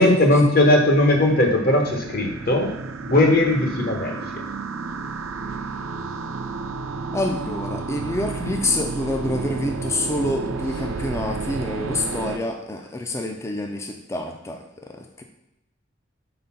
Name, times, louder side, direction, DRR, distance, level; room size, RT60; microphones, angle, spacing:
voice 1, 0.0-2.7 3.1-4.4, left 1 dB, 45° left, 2 dB, 1.0 m, -18 dB
sound 1, 1.0-12.4, right 4 dB, 85° right, 0.5 m, -31 dB
voice 2, 7.1-15.2, left 1 dB, 15° left, 3 dB, 0.3 m, -27 dB
4.5 x 3.9 x 5.6 m, 0.89 s
head